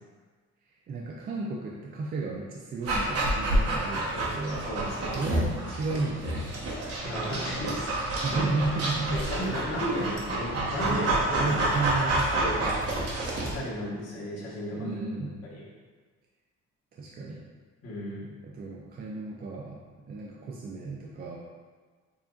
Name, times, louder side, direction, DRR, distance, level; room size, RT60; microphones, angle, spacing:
voice 1, 0.9-4.7 5.1-6.6 8.2-9.4 9.9-10.1 10.9-12.9 14.7-15.4 16.9-17.4 18.4-19.8 20.1-21.4, right 3 dB, 35° right, -3 dB, 0.4 m, -34 dB
Dog, 2.8-13.6, right 1 dB, 55° right, 1.0 m, -29 dB
voice 2, 4.6-5.2 7.0-7.9 8.4-8.5 9.1-11.7 12.3-12.6 13.4-15.0 15.5-15.6 17.8-18.3, equal, 55° left, -6 dB, 1.4 m, -34 dB
6.9 x 2.5 x 2.4 m, 1.5 s
cardioid pair, 160°, 29 cm